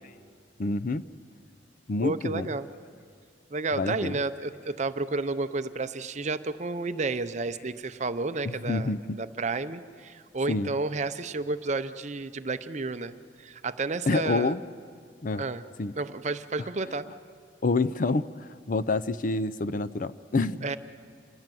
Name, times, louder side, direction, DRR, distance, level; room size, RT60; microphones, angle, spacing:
voice 1, 0.6-1.0 1.9-2.5 3.8-4.2 8.5-9.2 10.5-10.7 14.1-14.6 15.2-15.4 15.8-15.9 17.6-20.8, left 3 dB, 45° left, 13 dB, 0.5 m, -27 dB
voice 2, 2.0-2.7 3.5-14.5 15.4-15.6 15.9-17.1 20.6-20.8, right 3 dB, 35° right, 11 dB, 0.7 m, -31 dB
27.0 x 20.0 x 7.7 m, 2.2 s
head